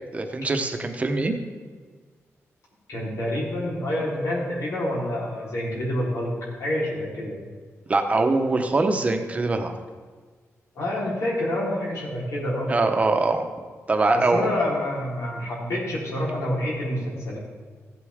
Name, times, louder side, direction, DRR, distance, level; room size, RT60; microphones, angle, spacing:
voice 1, 0.1-1.3 7.9-9.7 12.7-13.5 13.9-14.4, right 3 dB, 25° right, 5 dB, 0.9 m, -22 dB
voice 2, 2.9-6.3 6.6-7.4 10.8-12.7 14.1-17.4, left 1 dB, 80° left, -5 dB, 3.9 m, -27 dB
15.0 x 8.2 x 3.6 m, 1.5 s
wide cardioid pair, 150°, 5 cm